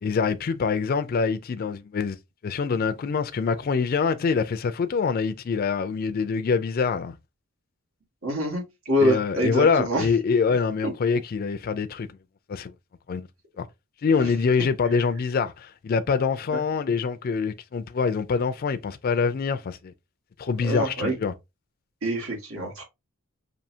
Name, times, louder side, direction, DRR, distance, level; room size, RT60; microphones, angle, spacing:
voice 1, 0.0-2.2 2.4-7.2 9.0-12.1 12.5-12.7 13.1-13.3 13.6-13.7 14.0-19.9 20.4-21.3, left 5 dB, 45° left, 0.3 m, -25 dB
voice 2, 8.2-10.1 10.8-10.9 14.2-14.3 16.5-16.6 20.6-21.1 22.0-22.8, equal, 85° right, 1.9 m, -26 dB
5.4 x 2.7 x 2.7 m
head